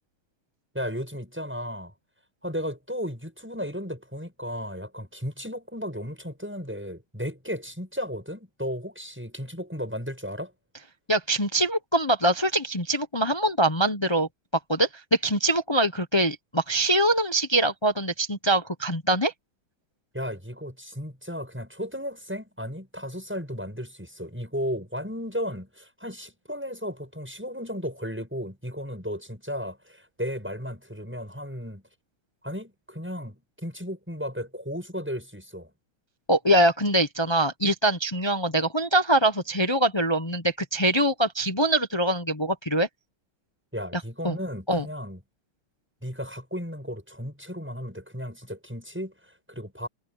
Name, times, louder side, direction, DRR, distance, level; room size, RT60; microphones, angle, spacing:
voice 1, 0.7-1.9 2.4-10.5 20.1-31.8 32.4-35.7 43.7-45.2 46.0-49.9, equal, 5° right, 7.9 m, -34 dB
voice 2, 11.1-14.3 14.7-19.3 36.3-42.9 43.9-44.4 44.7-44.8, right 1 dB, 40° left, 0.3 m, -23 dB
omnidirectional pair, 2.3 m